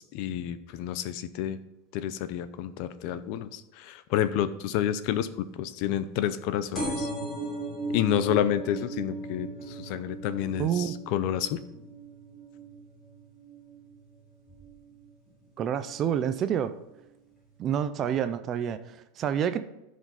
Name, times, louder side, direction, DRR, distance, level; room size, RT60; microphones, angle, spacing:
voice 1, 0.0-1.6 1.9-7.1 7.9-11.6, left 10 dB, 45° left, 13 dB, 0.5 m, -29 dB
sound 1, 6.7-14.0 14.5-14.9 15.8-15.9 16.1-16.2 16.4-16.5, right 2 dB, 15° left, 3.5 m, -37 dB
voice 2, 10.6-10.9 15.6-16.7 17.6-19.6, right 9 dB, 25° right, 12 dB, 0.4 m, -28 dB
14.0 x 5.1 x 4.1 m, 0.92 s
supercardioid pair, 170°, 0 cm